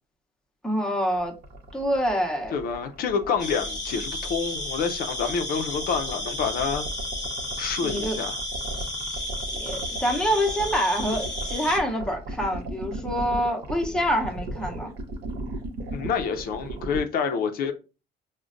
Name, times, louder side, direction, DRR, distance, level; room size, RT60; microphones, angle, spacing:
voice 1, 0.6-1.3 1.7-2.6 7.8-8.2 9.6-14.9, equal, 5° left, 0.7 m, -26 dB
sound 1, 1.2-17.0, right 2 dB, 65° right, 0.8 m, -36 dB
voice 2, 2.5-6.9 7.6-8.4 15.9-17.7, left 6 dB, 60° left, 0.5 m, -28 dB
sound 2, 3.4-11.8, left 1 dB, 20° left, 1.0 m, -33 dB
5.0 x 2.1 x 2.5 m
cardioid pair, 110°, 17 cm